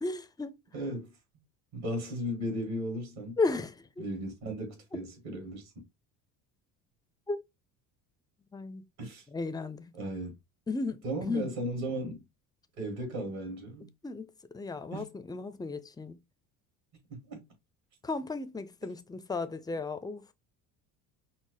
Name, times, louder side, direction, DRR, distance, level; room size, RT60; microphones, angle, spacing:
voice 1, 0.0-0.6 3.4-4.0 7.3-7.4 8.5-8.8 9.3-9.9 10.7-11.6 14.0-16.2 18.0-20.3, left 3 dB, 10° left, 0.4 m, -34 dB
voice 2, 0.7-1.1 1.7-3.4 4.0-5.8 9.0-9.2 9.9-10.3 11.0-12.2 12.8-13.9 14.9-15.1 17.3-17.4, right 1 dB, 65° right, 2.5 m, -36 dB
5.5 x 2.0 x 3.2 m
hypercardioid pair, 65°, 49 cm